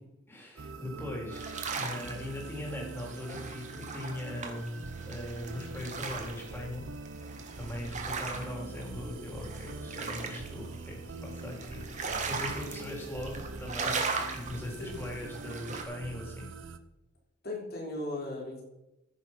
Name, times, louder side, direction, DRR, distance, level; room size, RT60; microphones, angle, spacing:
voice 1, 0.3-6.9 7.5-14.0 14.3-16.5, left 1 dB, 10° left, -2 dB, 3.3 m, -40 dB
sound 1, 0.6-16.8, right 3 dB, 70° right, 0.8 m, -44 dB
sound 2, 1.3-15.8, right 4 dB, 40° right, 1.6 m, -39 dB
voice 2, 17.4-18.6, left 2 dB, 55° left, -2 dB, 3.9 m, -37 dB
14.5 x 6.3 x 5.8 m, 0.93 s
head